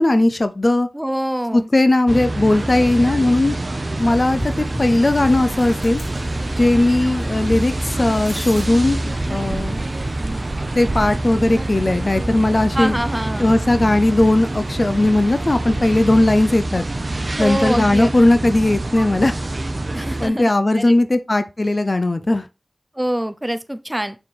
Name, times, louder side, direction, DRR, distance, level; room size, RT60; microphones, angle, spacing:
voice 1, 0.0-0.9 1.5-3.6 4.0-6.0 6.6-9.8 10.7-13.0 13.4-16.8 17.4-19.3 20.2-22.4, left 2 dB, 45° left, 0.7 m, -17 dB
voice 2, 0.9-1.7 12.7-13.5 17.4-18.1 19.9-21.0 23.0-24.2, right 1 dB, 10° right, 0.7 m, -25 dB
sound 1, 2.1-20.3, right 2 dB, 50° right, 0.8 m, -26 dB
sound 2, 4.0-15.5, left 1 dB, 90° left, 2.2 m, -38 dB
5.8 x 4.4 x 4.9 m
wide cardioid pair, 65°, 0 cm